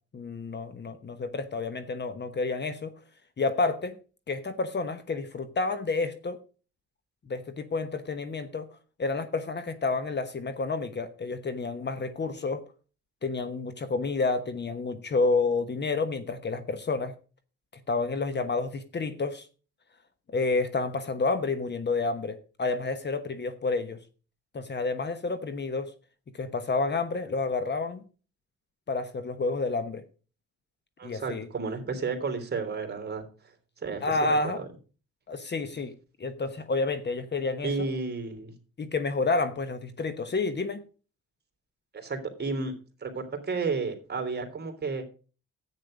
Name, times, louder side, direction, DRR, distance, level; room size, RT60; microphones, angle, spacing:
voice 1, 0.1-2.9 3.4-4.0 4.3-6.4 7.3-8.7 9.0-12.6 13.2-17.1 17.9-19.5 20.3-24.0 24.5-25.9 26.3-28.0 28.9-30.0 31.0-31.5 34.0-34.6 35.3-35.9 36.2-37.7 38.8-40.8, left 3 dB, 35° left, 11 dB, 1.1 m, -29 dB
voice 2, 31.0-33.2 33.8-34.6 37.6-38.5 41.9-42.7 43.0-45.0, right 4 dB, 35° right, 6 dB, 3.1 m, -32 dB
10.5 x 8.8 x 5.1 m, 0.36 s
cardioid pair, 90°, 30 cm